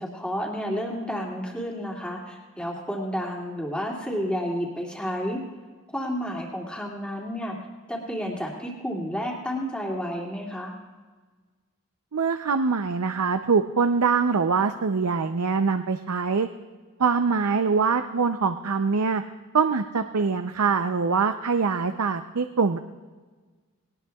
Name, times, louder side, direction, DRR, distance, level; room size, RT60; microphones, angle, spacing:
voice 1, 0.0-5.4 5.9-7.6 7.9-10.7, equal, 5° left, -2 dB, 2.5 m, -31 dB
voice 2, 12.1-16.5 17.0-19.2 19.5-22.8, right 5 dB, 85° right, 8 dB, 0.6 m, -23 dB
20.5 x 18.5 x 2.4 m, 1.4 s
head